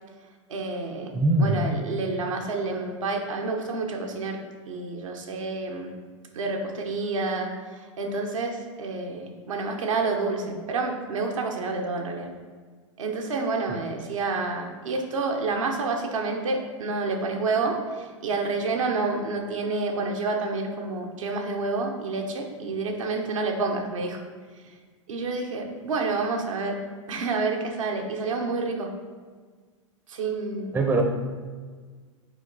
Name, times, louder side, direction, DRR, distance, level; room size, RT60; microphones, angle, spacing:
voice 1, 0.5-1.1 1.4-4.4 4.7-5.9 6.3-12.3 13.0-24.2 24.6-24.7 25.1-26.8 27.1-28.9 30.1-30.8, right 3 dB, 75° right, 2 dB, 1.0 m, -29 dB
voice 2, 1.1-1.6 30.7-31.0, right 2 dB, 10° right, 4 dB, 0.6 m, -21 dB
6.1 x 4.4 x 4.0 m, 1.5 s
hypercardioid pair, 105°, 17 cm